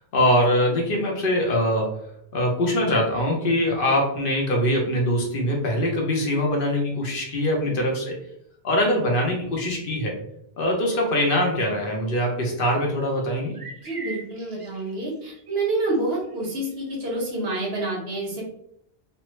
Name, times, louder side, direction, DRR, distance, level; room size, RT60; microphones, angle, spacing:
voice 1, 0.1-8.2 8.6-10.2 10.6-13.5, left 1 dB, 60° left, 0 dB, 0.9 m, -23 dB
sound 1, 11.4-11.7 12.9-15.9 16.2-16.5 16.9-17.0, right 3 dB, 35° right, 0.6 m, -42 dB
voice 2, 13.8-18.4, right 2 dB, 75° right, -2 dB, 1.2 m, -28 dB
3.2 x 2.0 x 3.0 m, 0.72 s
omnidirectional pair, 1.1 m